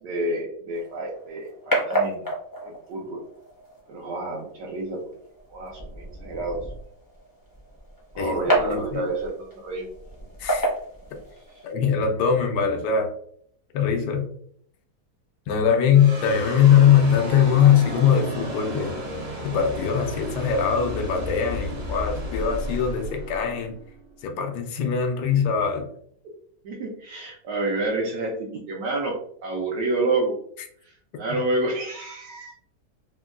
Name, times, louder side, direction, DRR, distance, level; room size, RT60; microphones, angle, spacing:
voice 1, 0.0-2.2 2.6-3.2 3.9-5.0 5.5-6.6 8.1-9.9 26.6-29.1 29.4-30.3 31.1-32.5, right 2 dB, 80° right, -2 dB, 1.2 m, -29 dB
sound 1, 0.7-11.7, right 1 dB, 20° left, 0.5 m, -31 dB
voice 2, 8.6-9.1 10.4-10.7 11.6-13.1 13.7-14.3 15.5-19.0 19.4-23.8 24.2-25.9, left 8 dB, 90° left, 5 dB, 1.2 m, -21 dB
sound 2, 15.9-24.5, left 1 dB, 50° right, 0.9 m, -33 dB
3.4 x 2.2 x 2.3 m, 0.64 s
omnidirectional pair, 1.8 m